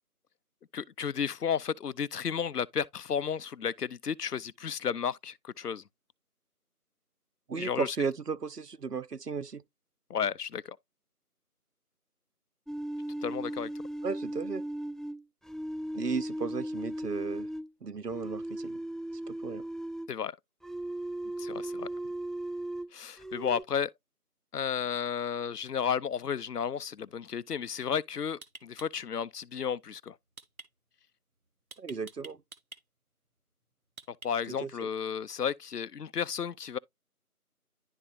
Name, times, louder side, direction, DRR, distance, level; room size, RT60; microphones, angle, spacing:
voice 1, 0.7-5.8 7.5-8.0 10.1-10.8 13.2-13.7 20.1-20.3 21.4-21.9 22.9-23.9 24.5-30.1 34.2-36.8, left 7 dB, 85° left, 0.6 m, -33 dB
voice 2, 7.5-9.6 14.0-14.6 15.9-17.5 17.8-18.8 19.3-19.6 31.8-32.4 34.5-34.9, right 5 dB, 85° right, 0.9 m, -35 dB
sound 1, 12.7-17.7 18.1-20.1 20.6-22.9 23.2-23.6, right 1 dB, ahead, 0.3 m, -37 dB
sound 2, 28.4-29.1 30.4-30.7 31.7-32.8 34.0-34.6, right 2 dB, 65° right, 1.2 m, -47 dB
11.0 x 3.7 x 2.4 m
figure-of-eight pair, 180°, 46 cm